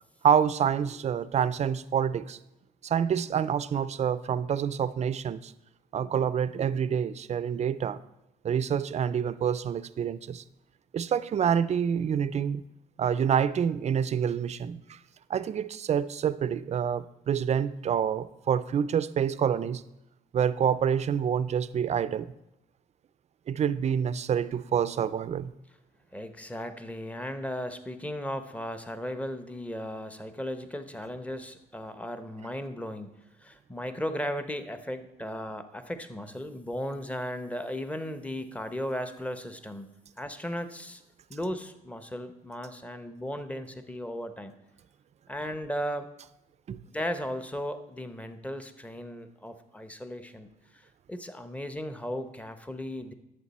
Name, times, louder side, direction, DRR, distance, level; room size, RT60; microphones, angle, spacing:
voice 1, 0.2-2.4 2.8-5.5 5.9-8.0 8.4-10.4 10.9-12.6 13.0-15.0 15.3-19.8 20.3-22.3 23.5-25.5 46.7-46.8, right 8 dB, 45° right, 16 dB, 0.5 m, -27 dB
voice 2, 26.1-39.9 40.2-41.0 41.3-44.5 45.3-46.1 46.9-53.1, equal, 10° left, 9 dB, 0.9 m, -36 dB
11.0 x 7.4 x 4.2 m, 0.90 s
cardioid pair, 85°, 16 cm